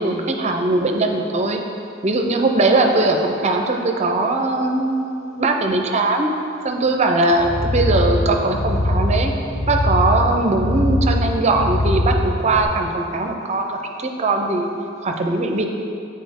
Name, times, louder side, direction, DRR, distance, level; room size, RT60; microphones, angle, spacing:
voice 1, 0.0-1.6 2.0-6.3 6.6-9.3 9.7-14.7 15.0-15.6, right 2 dB, 35° right, 3 dB, 0.5 m, -20 dB
sound 1, 7.3-12.6, left 1 dB, 35° left, 0.8 m, -22 dB
8.4 x 4.3 x 3.5 m, 2.5 s
head